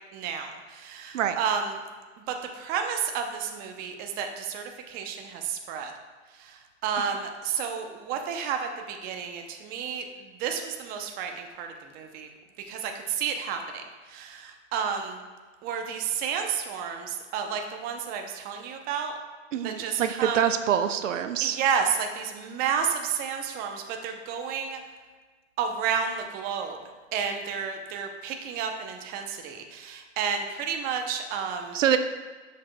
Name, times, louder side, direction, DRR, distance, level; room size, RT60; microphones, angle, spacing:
voice 1, 0.1-1.8 2.3-5.9 6.4-12.3 12.7-13.8 14.1-15.2 15.6-19.2 19.6-20.5 21.4-24.8 25.6-26.8 27.1-31.8, right 7 dB, 25° right, 4 dB, 0.6 m, -31 dB
voice 2, 19.5-21.6 31.7-32.0, right 9 dB, 85° right, 9 dB, 0.6 m, -25 dB
7.3 x 6.1 x 2.2 m, 1.4 s
hypercardioid pair, 130°, 37 cm